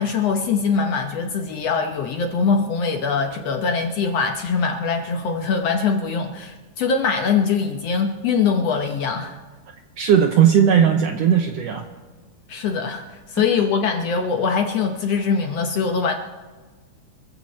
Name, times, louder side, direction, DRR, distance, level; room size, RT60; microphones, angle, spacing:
voice 1, 0.0-9.4 12.5-16.1, left 5 dB, 65° left, 4 dB, 1.7 m, -22 dB
voice 2, 10.0-11.8, right 8 dB, 75° right, 5 dB, 1.5 m, -17 dB
25.5 x 14.5 x 3.2 m, 1.4 s
omnidirectional pair, 3.7 m